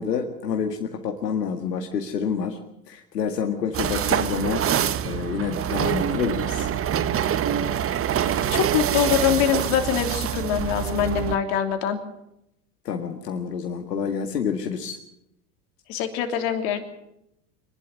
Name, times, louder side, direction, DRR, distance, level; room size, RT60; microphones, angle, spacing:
voice 1, 0.0-2.6 2.9-4.6 5.0-6.7 12.9-15.0, left 6 dB, 90° left, 3 dB, 2.0 m, -28 dB
sound 1, 3.7-11.4, right 9 dB, 30° right, 1.1 m, -25 dB
voice 2, 8.3-12.0 15.9-16.8, left 9 dB, 60° left, 5 dB, 3.3 m, -24 dB
24.0 x 11.5 x 9.7 m, 0.84 s
hypercardioid pair, 95°, 47 cm